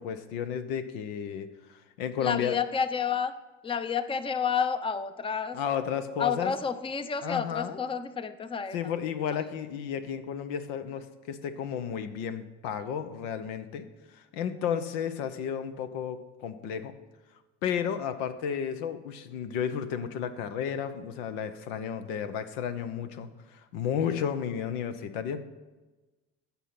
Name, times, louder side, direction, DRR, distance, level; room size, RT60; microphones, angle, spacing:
voice 1, 0.0-2.6 5.5-6.5 7.2-7.8 8.7-16.9 17.6-25.5, left 8 dB, 85° left, 10 dB, 1.0 m, -33 dB
voice 2, 2.2-3.3 3.6-5.6 6.2-8.9, left 6 dB, 15° left, 12 dB, 0.6 m, -30 dB
15.0 x 5.7 x 6.0 m, 1.2 s
supercardioid pair, 90°, 32 cm